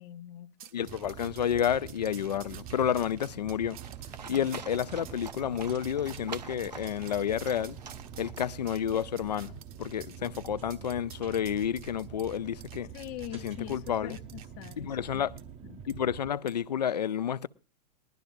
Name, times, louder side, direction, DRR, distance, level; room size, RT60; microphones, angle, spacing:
voice 1, 0.0-0.7 4.3-4.5 12.9-15.3 15.6-15.8, left 14 dB, 35° left, 0.6 m, -43 dB
sound 1, 0.6-14.8 15.4-15.5 15.9-16.0 16.5-16.7, right 10 dB, 60° right, 1.2 m, -52 dB
voice 2, 0.7-3.8 4.3-7.8 8.2-12.9 13.4-14.2 14.8-15.4 15.9-17.5, left 9 dB, 75° left, 0.5 m, -30 dB
sound 2, 0.8-16.3, right 8 dB, 30° right, 0.7 m, -46 dB
Livestock farm animals working animals, 3.8-8.7, right 6 dB, 80° right, 0.8 m, -46 dB
20.0 x 12.0 x 2.6 m
figure-of-eight pair, 100°, 21 cm